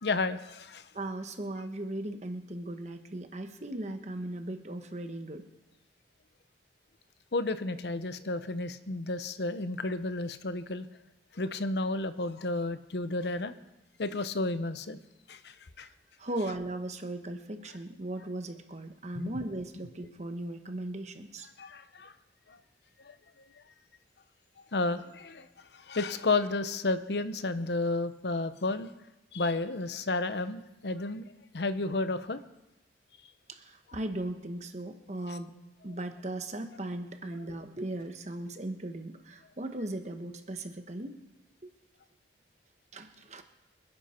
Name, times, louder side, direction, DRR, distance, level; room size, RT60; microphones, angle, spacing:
voice 1, 0.0-0.8 7.3-10.9 11.3-13.5 14.0-15.0 15.3-15.9 19.1-19.4 21.6-22.1 22.5-22.6 23.0-23.1 24.7-25.5 25.9-28.9 29.3-31.2 31.5-32.4 35.3-35.4, left 2 dB, 70° left, 12 dB, 0.8 m, -32 dB
voice 2, 0.9-5.4 16.2-21.5 33.5-35.5 35.8-41.2 41.6-41.7 42.9-43.4, right 1 dB, 40° right, 6 dB, 1.2 m, -37 dB
26.5 x 9.9 x 4.4 m, 0.99 s
head